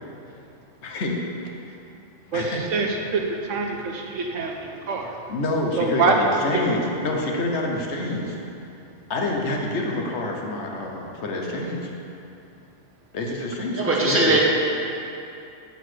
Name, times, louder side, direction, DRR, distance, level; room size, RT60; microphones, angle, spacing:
voice 1, 0.8-1.2 1.7-1.8 2.3-2.6 4.2-4.5 5.3-8.4 9.1-11.9 13.1-14.4, left 2 dB, 65° left, 0 dB, 1.2 m, -27 dB
voice 2, 2.7-5.1 5.8-6.2, right 4 dB, 80° right, 2 dB, 1.1 m, -25 dB
voice 3, 13.7-14.4, right 2 dB, 10° right, -4 dB, 0.9 m, -20 dB
7.0 x 4.5 x 6.1 m, 2.8 s
omnidirectional pair, 1.3 m